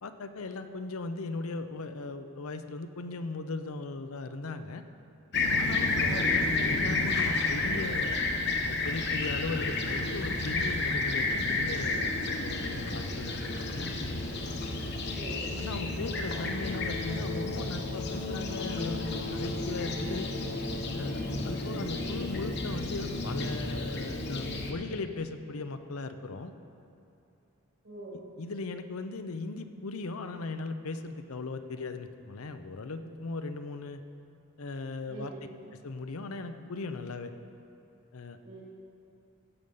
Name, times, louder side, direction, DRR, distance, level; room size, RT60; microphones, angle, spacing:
voice 1, 0.0-4.8 5.6-8.2 8.7-14.0 14.8-15.1 15.6-20.3 20.9-26.5 28.4-34.0 34.6-35.3 35.7-37.3 38.1-38.4, left 3 dB, 80° left, 9 dB, 0.7 m, -38 dB
Fixed-wing aircraft airplane, 5.3-24.7, left 3 dB, 50° left, 1.0 m, -31 dB
voice 2, 6.0-6.4 15.1-15.4 21.7-22.0 27.8-28.2 35.1-35.5 38.4-38.6, right 2 dB, 55° right, -5 dB, 3.0 m, -44 dB
15.5 x 6.6 x 5.5 m, 2.7 s
head